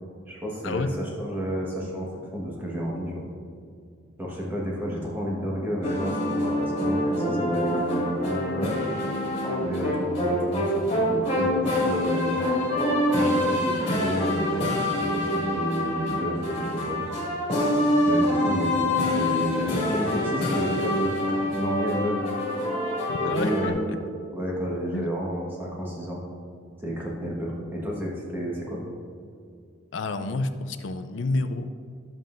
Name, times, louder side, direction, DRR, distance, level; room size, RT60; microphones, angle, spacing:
voice 1, 0.3-3.2 4.2-8.7 9.6-12.6 13.1-17.0 18.1-22.2 23.2-24.0 24.3-26.2 26.8-28.8, equal, 10° right, -4 dB, 1.4 m, -31 dB
sound 1, 5.8-23.7, left 1 dB, 30° left, 2.1 m, -26 dB
voice 2, 23.1-24.0 24.9-25.1 29.9-31.7, left 2 dB, 70° left, 9 dB, 0.5 m, -29 dB
12.0 x 7.4 x 2.6 m, 2.3 s
head